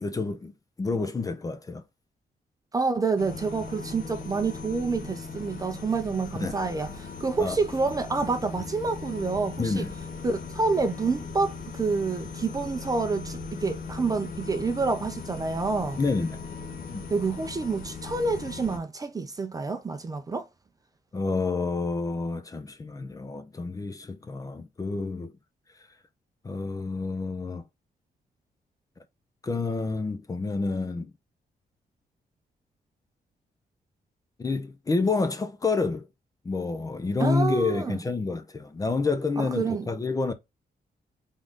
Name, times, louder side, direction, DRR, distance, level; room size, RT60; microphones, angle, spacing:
voice 1, 0.0-1.8 6.4-6.6 7.4-7.6 9.6-9.9 16.0-16.4 16.9-17.0 21.1-25.3 26.4-27.6 29.4-31.1 34.4-36.1 36.4-40.3, left 3 dB, 20° left, 0.6 m, -28 dB
voice 2, 2.7-9.8 10.2-16.0 17.1-20.5 37.2-38.0 39.4-39.9, right 4 dB, 20° right, 0.5 m, -28 dB
sound 1, 3.2-18.8, left 4 dB, 60° left, 1.3 m, -39 dB
3.9 x 3.6 x 3.6 m
wide cardioid pair, 175°, 16 cm